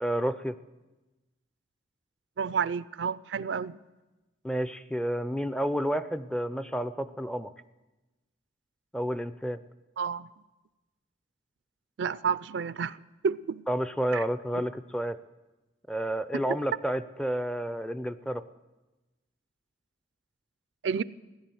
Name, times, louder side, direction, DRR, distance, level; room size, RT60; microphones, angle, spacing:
voice 1, 0.0-0.6 4.4-7.5 8.9-9.6 13.7-15.2 15.9-18.4, equal, 5° left, 0.4 m, -30 dB
voice 2, 2.4-3.8 10.0-10.3 12.0-13.0 13.2-13.7 14.1-14.2 20.8-21.0, right 6 dB, 70° right, 0.4 m, -30 dB
16.0 x 11.0 x 7.7 m
head